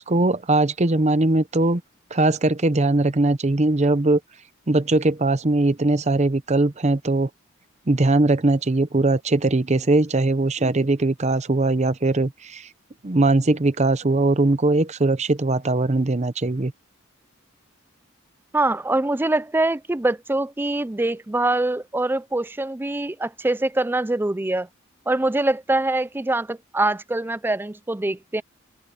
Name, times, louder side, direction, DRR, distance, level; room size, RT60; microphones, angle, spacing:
voice 1, 0.0-1.8 2.1-4.2 4.7-7.3 7.9-12.7 13.0-16.7, right 2 dB, 30° right, 0.8 m, -20 dB
voice 2, 18.5-24.7 25.1-28.4, right 2 dB, 10° right, 0.4 m, -24 dB
head